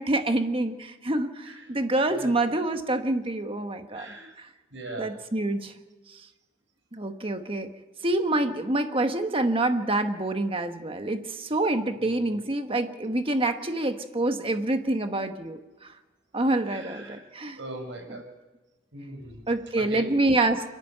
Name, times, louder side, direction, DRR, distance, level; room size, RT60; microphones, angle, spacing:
voice 1, 0.0-4.5 5.0-5.7 6.1-6.2 6.9-7.7 8.0-15.9 16.3-17.6 18.1-18.2 19.5-20.7, right 2 dB, 30° right, 6 dB, 1.4 m, -27 dB
voice 2, 3.9-4.3 4.7-5.1 12.1-12.3 16.7-17.2 17.6-18.2 18.9-19.4 19.8-20.0, right 2 dB, 75° right, 3 dB, 5.7 m, -40 dB
29.5 x 10.5 x 9.1 m, 1.2 s
head